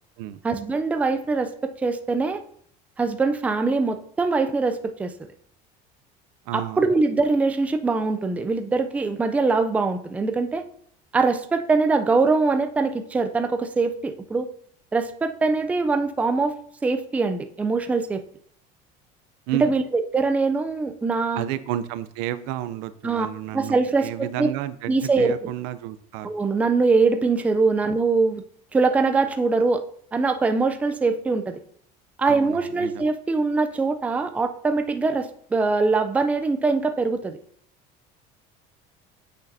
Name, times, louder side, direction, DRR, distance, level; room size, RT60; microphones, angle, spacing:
voice 1, 0.4-2.4 3.0-5.1 6.5-10.6 11.1-14.5 14.9-16.6 16.8-18.2 19.6-21.4 23.0-23.3 23.5-24.5 24.9-25.3 26.2-28.4 28.7-29.8 30.1-31.6 32.2-37.4, right 3 dB, 10° right, 7 dB, 0.3 m, -23 dB
voice 2, 6.5-6.9 19.5-19.7 21.3-26.3 32.2-33.0, right 13 dB, 85° right, 13 dB, 0.5 m, -31 dB
8.3 x 6.5 x 2.6 m, 0.63 s
cardioid pair, 155°, 19 cm